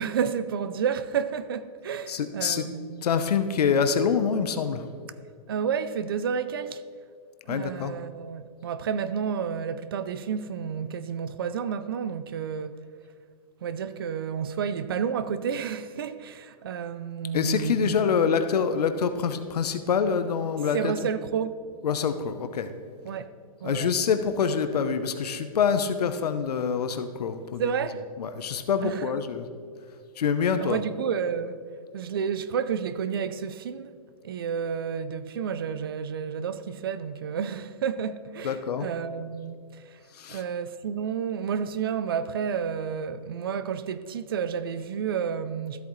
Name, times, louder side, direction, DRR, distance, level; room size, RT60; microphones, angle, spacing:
voice 1, 0.0-3.1 5.5-6.8 7.5-12.8 13.6-18.0 20.7-21.6 23.0-23.3 23.6-23.9 27.6-28.1 28.8-29.1 30.6-31.6 31.9-33.9 34.2-39.6 39.9-40.0 40.3-45.8, right 7 dB, 40° right, 0.4 m, -30 dB
voice 2, 2.1-2.6 3.0-4.8 7.5-7.9 17.3-20.9 21.8-22.7 23.6-27.6 28.2-29.5 30.2-30.8 38.4-38.9 40.1-40.4, left 6 dB, 85° left, 0.8 m, -26 dB
13.0 x 8.3 x 3.1 m
hypercardioid pair, 170°, 20 cm